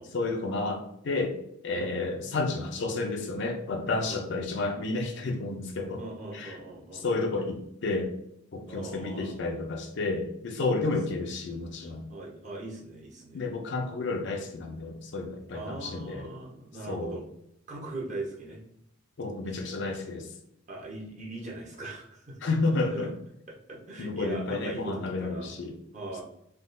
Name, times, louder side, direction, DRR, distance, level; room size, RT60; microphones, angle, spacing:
voice 1, 0.1-1.4 1.6-6.0 6.3-6.6 6.9-8.1 8.5-12.1 13.3-16.3 16.9-17.2 19.2-20.3 22.4-23.1 24.0-25.8, left 3 dB, 60° left, 4 dB, 0.5 m, -31 dB
voice 2, 6.0-7.0 8.7-9.4 12.1-13.4 15.5-17.2 17.7-18.7 19.5-19.6 20.7-22.4 22.9-23.1 23.5-25.5 25.9-26.2, right 2 dB, 35° right, -3 dB, 0.8 m, -40 dB
3.5 x 2.3 x 2.5 m, 0.74 s
head